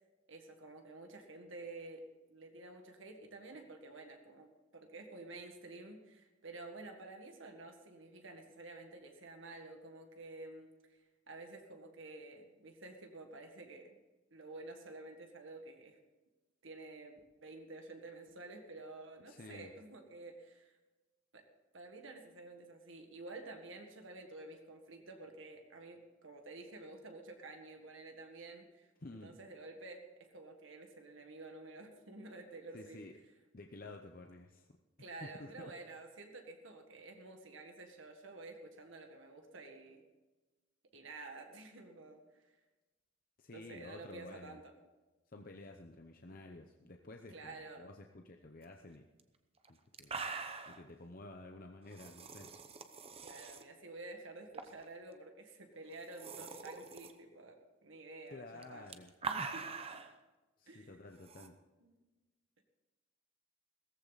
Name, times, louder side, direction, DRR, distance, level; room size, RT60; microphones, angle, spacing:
voice 1, 0.3-11.0 11.3-14.0 14.3-16.0 16.6-20.8 21.3-21.5 21.7-28.9 29.2-33.0 35.0-40.1 40.9-42.2 43.5-44.7 47.3-47.9 53.2-58.9 59.2-59.8 60.7-61.0 61.8-62.0 62.6-62.7, right 2 dB, 65° right, 4 dB, 1.7 m, -51 dB
voice 2, 19.3-19.7 29.0-29.3 32.7-33.1 33.5-34.7 35.0-35.7 43.4-44.6 45.3-49.0 49.7-50.3 50.7-52.5 58.3-59.1 60.6-61.5, left 2 dB, 45° left, 3 dB, 0.8 m, -51 dB
sound 1, 49.2-49.3 49.6-49.7 49.9-50.8 51.9-53.6 54.5-54.9 55.2-55.3 55.9-57.1 58.5-60.1 61.2-61.5, right 4 dB, 30° right, 0.8 m, -43 dB
17.0 x 14.5 x 4.1 m, 1.2 s
head